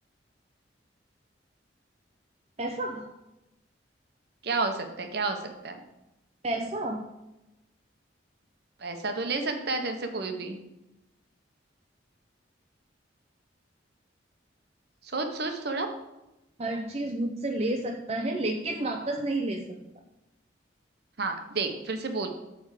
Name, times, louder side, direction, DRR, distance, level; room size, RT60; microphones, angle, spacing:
voice 1, 2.6-3.1 6.4-7.0 16.6-19.6, right 2 dB, 35° right, 2 dB, 0.6 m, -30 dB
voice 2, 4.4-5.8 8.8-10.6 15.1-15.9 21.2-22.3, right 3 dB, 60° right, 6 dB, 1.0 m, -30 dB
8.2 x 3.6 x 6.5 m, 0.94 s
head